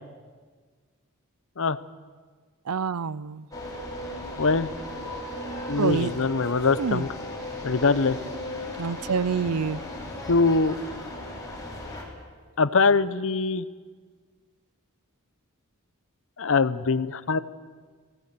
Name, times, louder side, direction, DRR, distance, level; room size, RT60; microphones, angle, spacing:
voice 1, 2.7-3.4 5.8-6.1 6.8-7.0 8.8-9.8, right 5 dB, 80° right, 19 dB, 0.6 m, -27 dB
sound 1, 3.5-12.0, left 1 dB, 15° left, 4.4 m, -36 dB
voice 2, 4.4-4.7 5.7-7.1 7.6-8.2 10.3-10.8 12.6-13.7 16.4-17.4, left 4 dB, 65° left, 15 dB, 0.8 m, -22 dB
26.0 x 17.5 x 6.9 m, 1.5 s
head